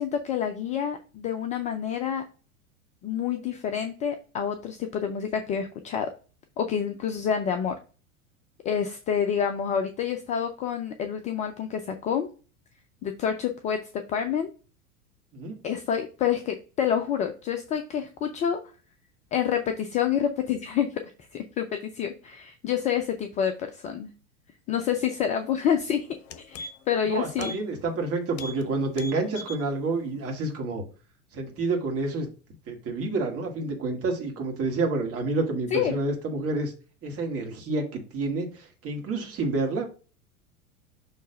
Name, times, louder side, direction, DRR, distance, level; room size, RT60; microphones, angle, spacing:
voice 1, 0.0-2.2 3.0-6.1 6.6-7.8 8.6-12.3 13.0-14.5 15.6-18.6 19.3-21.0 21.3-21.7 21.9-24.1 24.7-26.1 26.5-27.5 35.7-35.9, left 8 dB, 20° left, 6 dB, 0.4 m, -28 dB
sound 1, 25.7-25.8 26.1-27.0 27.4-27.6 27.9-28.0 28.3-28.6 28.9-29.6 30.0-30.1, left 2 dB, 50° left, 0.9 m, -40 dB
voice 2, 27.0-30.8 31.3-32.3 32.7-36.7 37.0-39.9, right 3 dB, 30° right, 3 dB, 2.0 m, -29 dB
6.5 x 3.2 x 5.1 m, 0.36 s
figure-of-eight pair, 90°, 43 cm